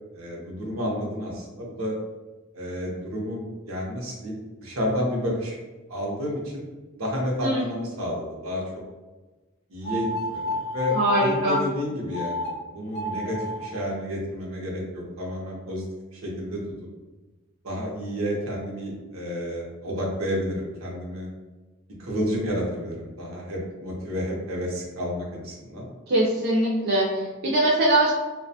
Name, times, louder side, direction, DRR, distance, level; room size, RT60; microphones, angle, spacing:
voice 1, 0.1-1.9 2.5-5.6 5.9-6.7 7.0-8.6 9.7-15.8 16.1-16.6 17.6-21.3 22.0-25.9, equal, 85° right, -2 dB, 0.7 m, -30 dB
voice 2, 7.4-7.7 10.9-11.6 26.1-28.1, right 1 dB, 50° right, -4 dB, 0.4 m, -22 dB
sound 1, 9.8-11.7 12.1-12.5 12.9-13.7, left 2 dB, 50° left, 0.4 m, -31 dB
2.4 x 2.2 x 2.6 m, 1.2 s
head